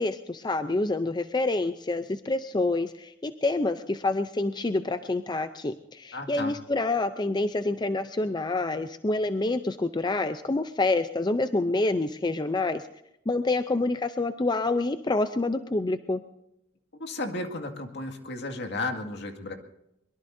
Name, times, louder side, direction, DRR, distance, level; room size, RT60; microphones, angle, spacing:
voice 1, 0.0-12.8 13.3-16.2, left 2 dB, 20° left, 10 dB, 0.5 m, -27 dB
voice 2, 6.1-6.6 17.0-19.5, left 2 dB, 60° left, 4 dB, 2.1 m, -34 dB
23.5 x 22.5 x 2.7 m, 0.83 s
head